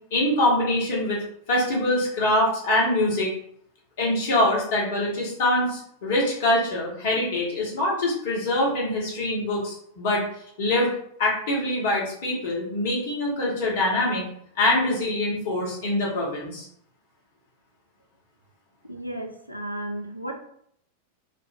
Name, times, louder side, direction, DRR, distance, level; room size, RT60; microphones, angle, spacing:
voice 1, 0.1-1.2 1.5-3.3 4.0-10.2 10.6-10.9 11.2-14.3 14.6-16.7, left 1 dB, 55° left, -3 dB, 1.0 m, -24 dB
voice 2, 18.8-20.3, right 1 dB, 85° right, 4 dB, 0.4 m, -34 dB
2.5 x 2.1 x 3.4 m, 0.68 s
figure-of-eight pair, 90°, 0 cm